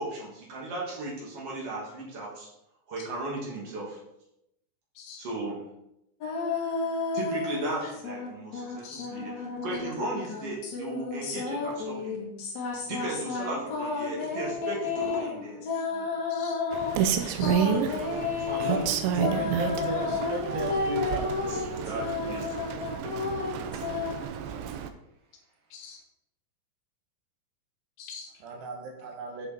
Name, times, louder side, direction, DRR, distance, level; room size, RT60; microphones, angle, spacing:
voice 1, 0.0-2.5 2.9-4.0 5.2-5.6 7.1-9.3 9.6-12.1 12.8-16.1 17.6-19.0 20.1-20.2 21.5-22.5, right 2 dB, 40° right, -4 dB, 2.7 m, -36 dB
sound 1, 6.2-8.3 8.5-24.2, left 4 dB, 55° left, 2.1 m, -32 dB
voice 2, 16.3-16.6 17.3-17.7 25.7-26.0 28.0-28.3, left 5 dB, 75° left, 3 dB, 2.3 m, -44 dB
Rain, 16.7-24.9, right 8 dB, 80° right, 2.9 m, -31 dB
voice 3, 18.5-23.5 23.9-24.7 28.4-29.5, right 3 dB, 65° right, 2 dB, 2.7 m, -37 dB
8.5 x 7.0 x 4.4 m, 0.82 s
omnidirectional pair, 5.5 m